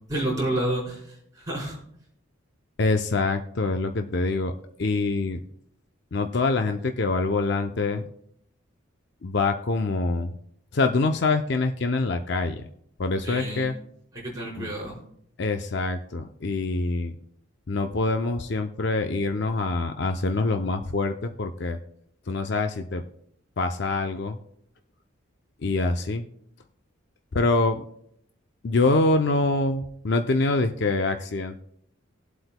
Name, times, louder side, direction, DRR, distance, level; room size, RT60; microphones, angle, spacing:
voice 1, 0.1-1.0 1.4-1.8 13.2-13.7 14.1-15.0, right 1 dB, 15° right, -6 dB, 4.2 m, -29 dB
voice 2, 2.8-4.5 4.8-5.4 6.1-8.0 9.2-10.3 10.7-12.7 13.0-13.7 14.6-14.7 15.4-17.1 17.7-21.8 22.3-23.0 23.6-24.4 25.6-26.3 27.3-27.8 28.6-31.6, left 3 dB, 55° left, 6 dB, 0.5 m, -25 dB
20.0 x 7.9 x 2.2 m, 0.71 s
head